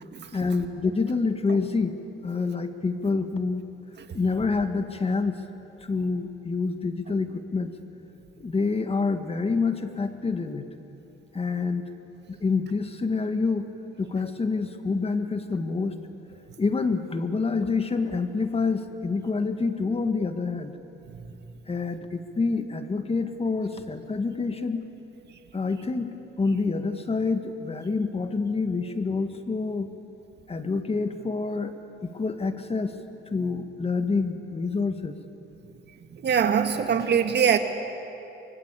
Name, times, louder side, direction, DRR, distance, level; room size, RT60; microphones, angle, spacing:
voice 1, 0.3-1.9 2.2-3.6 4.1-5.4 5.8-7.7 8.4-10.7 11.3-11.9 12.3-13.6 14.0-16.0 16.6-20.7 21.7-24.8 25.5-29.9 30.5-31.7 32.0-32.9 33.3-35.2, left 4 dB, 30° left, 8 dB, 1.9 m, -27 dB
voice 2, 36.1-37.6, right 7 dB, 60° right, 7 dB, 1.9 m, -22 dB
24.5 x 24.0 x 8.5 m, 2.9 s
cardioid pair, 90°, 20 cm